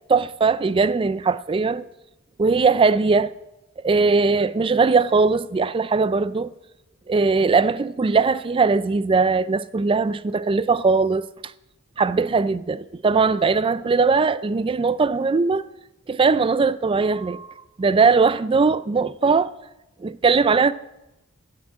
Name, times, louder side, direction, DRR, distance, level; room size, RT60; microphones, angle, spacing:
voice 1, 0.1-1.8 2.4-3.3 3.8-6.5 7.1-11.2 12.0-15.7 16.1-17.5 17.8-19.5 20.0-20.7, right 4 dB, 25° right, 0.3 m, -20 dB
12.5 x 6.0 x 8.5 m
head